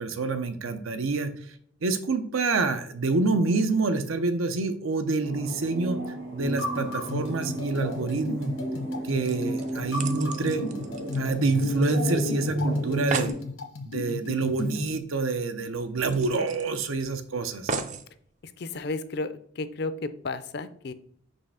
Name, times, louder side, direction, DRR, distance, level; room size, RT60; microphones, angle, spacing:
voice 1, 0.0-1.3 1.8-8.5 9.0-10.6 11.2-13.3 13.9-17.7, right 3 dB, 85° right, 9 dB, 0.7 m, -27 dB
sound 1, 5.2-13.3, equal, 70° right, 2.2 m, -32 dB
sound 2, 6.4-14.9, left 2 dB, 75° left, 1.0 m, -35 dB
sound 3, 9.3-11.9 12.2-12.3 12.6-12.7 12.9-13.4 14.9-15.0 15.4-15.5 16.1-17.1 17.7-18.1 18.8-18.9, right 4 dB, 35° right, 0.4 m, -35 dB
voice 2, 18.4-20.9, left 3 dB, 50° left, 12 dB, 0.5 m, -33 dB
5.5 x 3.2 x 5.6 m, 0.63 s
head